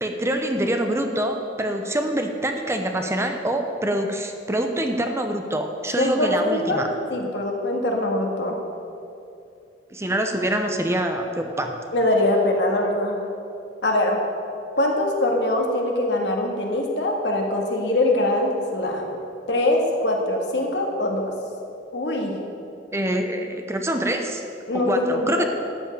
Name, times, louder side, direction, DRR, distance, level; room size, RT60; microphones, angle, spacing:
voice 1, 0.0-6.9 9.9-11.8 22.9-24.4 24.7-25.4, right 1 dB, 15° right, 5 dB, 0.7 m, -25 dB
voice 2, 6.0-6.8 7.1-8.6 11.9-13.3 13.8-14.2 14.8-19.2 19.5-21.2 21.9-22.4 24.7-25.5, left 1 dB, 70° left, 1 dB, 1.8 m, -23 dB
12.0 x 5.4 x 8.9 m, 2.5 s
head